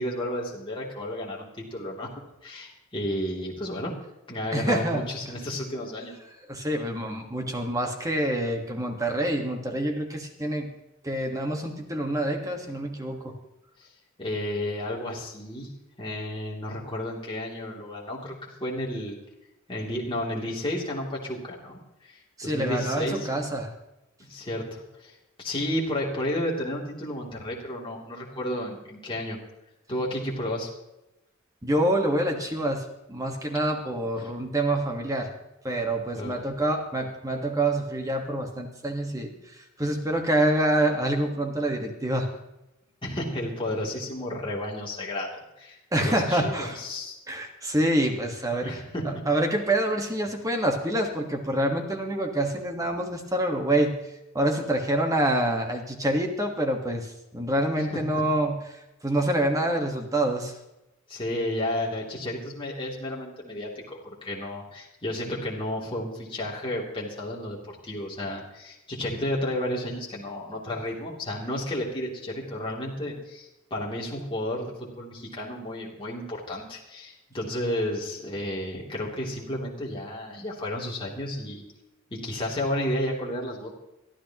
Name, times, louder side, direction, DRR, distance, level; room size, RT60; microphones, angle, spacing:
voice 1, 0.0-2.1 2.4-3.9 4.3-6.1 14.2-15.7 16.0-19.2 19.7-23.3 24.3-29.4 29.9-30.7 36.1-36.3 43.0-45.3 45.6-47.1 48.6-49.2 61.1-81.6 82.1-83.7, left 1 dB, 25° left, -4 dB, 2.9 m, -32 dB
voice 2, 4.5-5.0 6.5-10.7 11.0-13.3 22.4-23.7 31.6-35.3 35.6-42.3 45.9-46.8 47.3-48.8 49.0-53.9 54.3-60.5, right 1 dB, 15° right, 3 dB, 1.5 m, -26 dB
23.0 x 13.0 x 3.0 m, 0.92 s
head